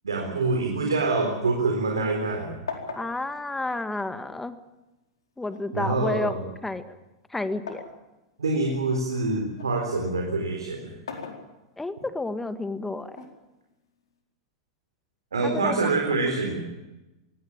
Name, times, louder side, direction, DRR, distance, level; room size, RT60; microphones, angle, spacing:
voice 1, 0.0-2.6 5.7-6.4 8.4-10.9 15.3-16.6, right 3 dB, 85° right, 2 dB, 3.9 m, -26 dB
sound 1, 1.0-2.3 2.7-4.6 5.5-8.0 8.5-9.8 10.8-12.0 13.1-14.1, left 5 dB, 80° left, 4.4 m, -41 dB
voice 2, 3.0-4.6 5.4-6.3 6.6-7.0 7.3-7.8 11.8-13.3 15.4-15.9, left 2 dB, 10° left, 10 dB, 1.8 m, -31 dB
22.5 x 17.5 x 8.9 m, 1.0 s
hypercardioid pair, 100°, 2 cm